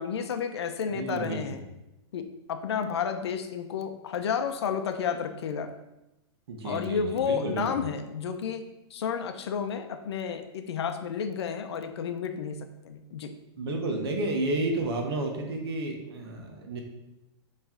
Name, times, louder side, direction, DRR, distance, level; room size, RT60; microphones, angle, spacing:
voice 1, 0.0-1.6 2.1-5.7 6.6-8.6 8.9-12.6 12.8-13.3, left 7 dB, 75° left, 7 dB, 0.7 m, -31 dB
voice 2, 0.9-1.6 6.5-7.8 13.6-16.8, right 2 dB, 65° right, 3 dB, 1.3 m, -31 dB
7.4 x 3.3 x 3.8 m, 0.95 s
supercardioid pair, 170°, 14 cm